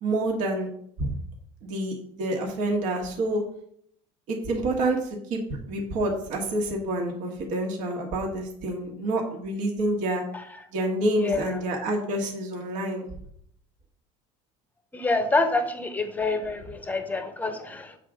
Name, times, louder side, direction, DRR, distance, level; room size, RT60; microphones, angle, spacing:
voice 1, 0.0-0.7 1.0-1.1 1.6-3.4 4.3-5.4 5.7-10.2 10.7-13.1, right 1 dB, 55° right, 0 dB, 1.5 m, -28 dB
voice 2, 11.1-11.6 14.9-18.0, left 3 dB, 10° left, 8 dB, 0.9 m, -27 dB
7.4 x 3.7 x 6.1 m, 0.67 s
cardioid pair, 140°, 15 cm